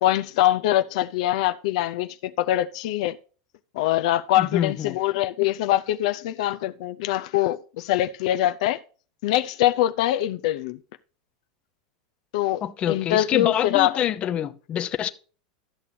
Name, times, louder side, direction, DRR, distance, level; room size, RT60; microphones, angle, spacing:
voice 1, 0.0-3.2 3.7-8.8 9.2-10.8 12.3-13.9, left 14 dB, 70° left, 0.5 m, -23 dB
voice 2, 4.4-5.0 12.6-15.1, left 10 dB, 30° left, 0.7 m, -26 dB
12.5 x 6.9 x 2.7 m
supercardioid pair, 150°, 4 cm